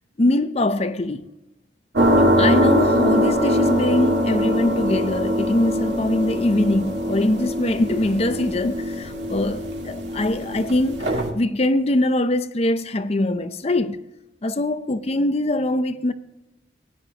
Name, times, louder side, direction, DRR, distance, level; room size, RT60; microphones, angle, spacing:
voice 1, 0.2-1.3 2.2-14.1 14.4-16.1, left 1 dB, 35° left, 0.6 m, -23 dB
sound 1, 2.0-11.3, equal, 75° right, 2.2 m, -22 dB
17.0 x 10.0 x 2.9 m
head